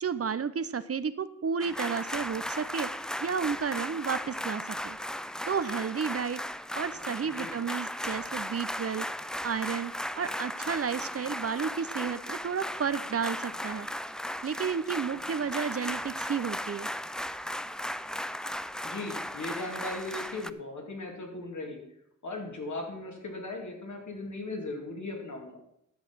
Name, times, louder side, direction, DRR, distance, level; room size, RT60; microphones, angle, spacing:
voice 1, 0.0-2.9 3.2-5.0 5.5-6.4 6.7-9.1 9.4-13.9 14.4-16.9, right 6 dB, 50° right, 14 dB, 0.6 m, -32 dB
sound 1, 1.6-20.5, equal, ahead, 0.3 m, -36 dB
voice 2, 7.2-7.5 18.8-21.8 22.2-25.6, left 2 dB, 70° left, 1 dB, 2.6 m, -38 dB
11.0 x 7.1 x 6.0 m, 0.75 s
wide cardioid pair, 85°, 30 cm